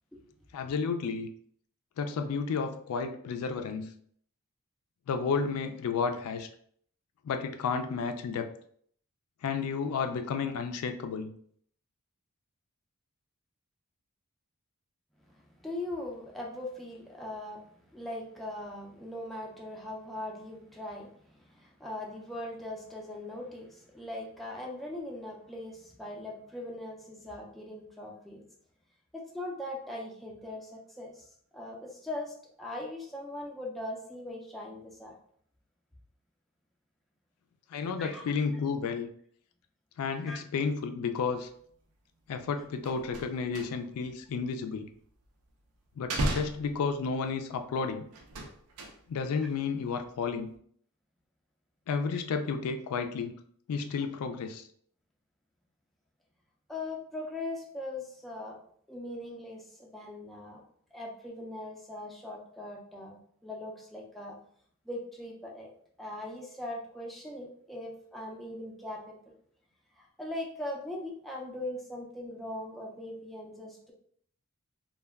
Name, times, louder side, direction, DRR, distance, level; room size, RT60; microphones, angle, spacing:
voice 1, 0.5-1.3 2.0-3.9 5.1-6.5 7.2-8.5 9.4-11.3 37.7-39.1 40.0-41.5 42.3-44.9 46.0-48.0 49.1-50.5 51.9-53.3 53.7-54.6, left 5 dB, 80° left, 7 dB, 0.3 m, -32 dB
voice 2, 15.3-28.4 29.1-31.3 31.5-35.2 38.0-38.4 40.3-40.4 56.7-58.6 58.9-60.6 60.9-63.2 63.4-64.4 64.9-65.7 66.0-69.4 69.9-73.9, left 1 dB, ahead, -2 dB, 0.3 m, -40 dB
sound 1, 42.3-42.5 42.7-44.1 44.3-45.5 45.9-47.4 48.1-49.3 49.6-50.1 50.4-50.6, right 2 dB, 75° right, 0.5 m, -36 dB
2.2 x 2.2 x 3.3 m, 0.62 s
head